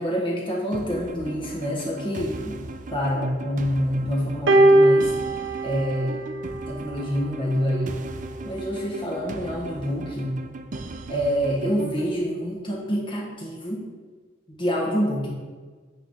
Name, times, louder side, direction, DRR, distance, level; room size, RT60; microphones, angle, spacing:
voice 1, 0.0-5.1 5.6-6.2 6.7-8.0 8.4-10.4 11.1-13.8 14.6-15.3, equal, 25° left, -3 dB, 1.4 m, -27 dB
sound 1, 0.7-12.1, right 2 dB, 40° right, 0.5 m, -38 dB
sound 2, 4.5-6.9 8.0-8.1, right 1 dB, 65° right, 0.9 m, -20 dB
9.1 x 4.2 x 6.4 m, 1.4 s
head